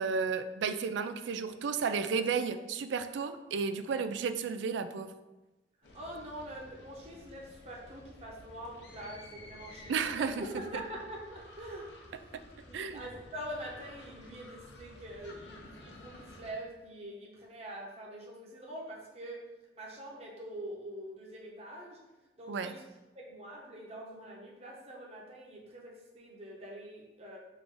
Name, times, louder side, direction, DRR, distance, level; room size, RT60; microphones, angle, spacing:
voice 1, 0.0-5.1 9.9-10.4 12.7-13.0 22.5-22.7, right 5 dB, 85° right, 10 dB, 0.3 m, -33 dB
sound 1, 5.8-16.5, left 1 dB, 80° left, 0.7 m, -53 dB
voice 2, 5.8-19.5 19.7-22.0 22.4-22.8 23.1-27.4, right 1 dB, 35° right, -2 dB, 0.8 m, -44 dB
3.8 x 2.5 x 4.6 m, 1.1 s
head